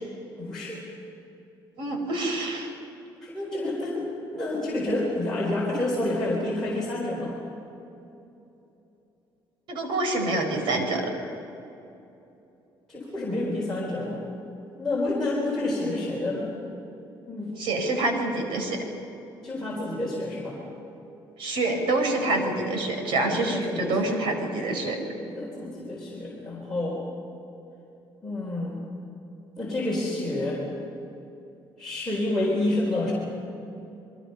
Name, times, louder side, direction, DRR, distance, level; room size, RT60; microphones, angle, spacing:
voice 1, 0.4-0.9 3.2-4.1 4.3-7.4 12.9-14.2 14.8-16.5 17.3-17.5 19.4-20.6 23.2-24.1 25.2-27.0 28.2-28.8 29.6-30.6 31.8-33.1, left 1 dB, 5° left, -7 dB, 4.3 m, -29 dB
voice 2, 1.8-2.7 9.7-11.1 17.6-18.8 21.4-25.0, right 2 dB, 80° right, 4 dB, 4.9 m, -26 dB
29.0 x 22.5 x 5.5 m, 2.9 s
cardioid pair, 170°, 9 cm